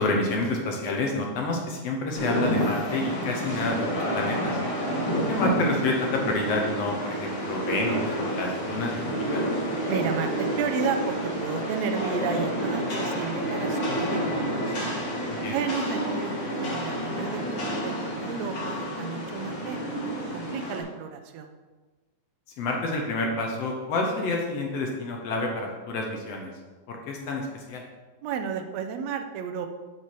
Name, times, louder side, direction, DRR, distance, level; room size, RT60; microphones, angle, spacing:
voice 1, 0.0-4.6 5.1-9.1 9.3-9.5 15.3-15.6 22.6-26.5 26.9-27.8, left 2 dB, 65° left, 1 dB, 1.8 m, -29 dB
Rain, 2.1-20.8, equal, 50° left, 2.4 m, -29 dB
voice 2, 9.9-14.8 15.5-21.5 28.2-29.7, right 7 dB, 75° right, 6 dB, 1.8 m, -33 dB
8.7 x 4.8 x 4.6 m, 1.3 s
omnidirectional pair, 3.4 m